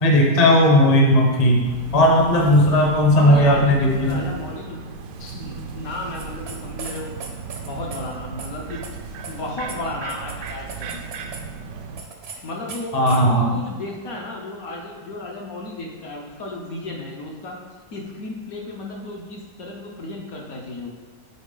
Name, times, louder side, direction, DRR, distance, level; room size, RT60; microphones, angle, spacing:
voice 1, 0.0-1.6 1.9-4.2 5.2-5.4 12.9-13.5, left 1 dB, 30° left, 0 dB, 0.8 m, -16 dB
sound 1, 1.6-12.0, right 5 dB, 80° right, 1.2 m, -36 dB
voice 2, 3.1-4.8 5.3-7.1 7.6-8.8 9.3-11.0 12.4-17.6 17.9-20.9, left 2 dB, 60° left, -1 dB, 1.1 m, -33 dB
sound 2, 6.1-8.0 8.4-8.5 8.8-8.9 9.2-9.3 9.7-9.8 10.1-11.4 12.0-12.4 12.7-13.3, right 5 dB, 55° right, 0.7 m, -37 dB
8.1 x 4.5 x 3.8 m, 1.4 s
omnidirectional pair, 1.9 m